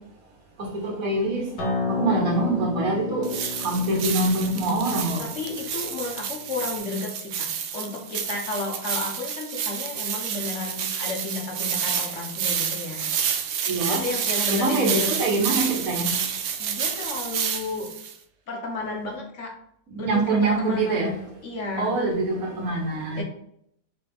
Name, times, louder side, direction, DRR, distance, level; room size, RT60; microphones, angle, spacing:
voice 1, 0.6-1.5 1.9-3.3 3.6-5.3 13.7-14.0 14.5-16.1 19.9-21.2 21.8-23.2, right 2 dB, 55° right, -1 dB, 1.4 m, -24 dB
Acoustic guitar, 1.6-6.8, left 3 dB, 85° left, 1.6 m, -32 dB
sound 1, 3.2-18.1, right 8 dB, 80° right, 0.6 m, -29 dB
voice 2, 5.2-13.1 13.9-15.2 16.6-17.9 18.5-19.6 20.0-21.2 21.4-21.9 23.2-23.3, left 3 dB, 50° left, 0 dB, 1.1 m, -32 dB
4.0 x 3.3 x 3.4 m, 0.70 s
omnidirectional pair, 1.9 m